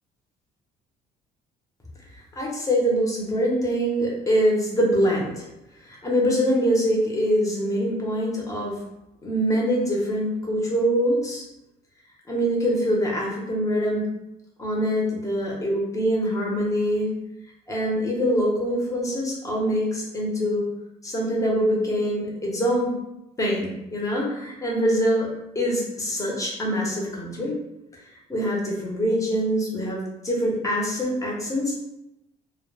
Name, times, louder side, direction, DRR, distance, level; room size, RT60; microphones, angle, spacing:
voice 1, 2.4-5.5 5.9-8.8 9.2-11.4 12.3-14.1 14.6-17.1 17.7-20.7 21.0-22.9 23.4-25.3 25.5-27.5 28.3-31.8, equal, 20° left, -3 dB, 0.8 m, -24 dB
2.2 x 2.1 x 3.2 m, 0.91 s
cardioid pair, 110°, 17 cm